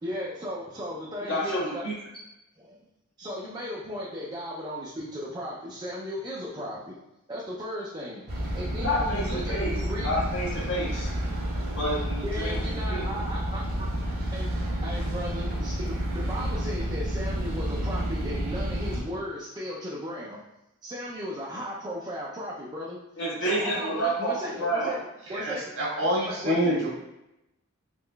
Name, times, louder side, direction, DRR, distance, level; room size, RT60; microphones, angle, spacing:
voice 1, 0.0-1.9 2.6-2.8 3.2-7.0 7.3-10.2 12.2-13.9 14.3-14.5 14.8-20.4 20.8-23.0 23.4-25.0 25.3-25.7 26.3-26.9, equal, 20° right, -5 dB, 0.4 m, -36 dB
voice 2, 1.3-1.9 8.8-9.7 10.0-11.1 11.7-13.0 23.2-24.9, right 1 dB, 60° left, -5 dB, 1.1 m, -29 dB
sound 1, 8.3-19.0, equal, 45° right, 0.7 m, -30 dB
voice 3, 25.3-26.9, equal, 75° right, -5 dB, 1.3 m, -26 dB
3.7 x 3.0 x 2.2 m, 0.91 s
head